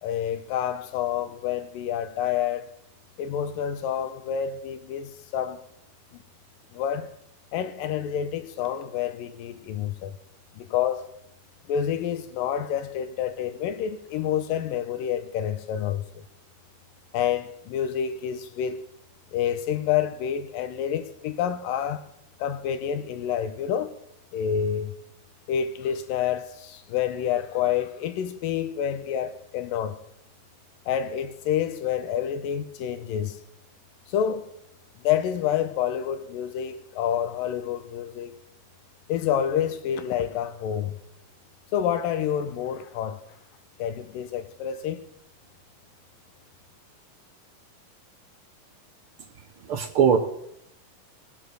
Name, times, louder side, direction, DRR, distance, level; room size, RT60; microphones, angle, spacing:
voice 1, 0.0-2.8 3.2-5.6 6.1-6.2 6.7-7.1 7.5-10.2 10.6-11.1 11.7-16.2 17.1-18.8 19.3-22.1 22.4-23.9 24.3-25.0 25.5-30.0 30.9-33.4 34.1-34.5 35.0-38.3 39.1-41.0 41.7-43.2 43.8-45.1, left 9 dB, 85° left, 2.6 m, -28 dB
voice 2, 49.6-50.2, right 7 dB, 75° right, 1.3 m, -21 dB
19.5 x 8.5 x 6.3 m
omnidirectional pair, 3.9 m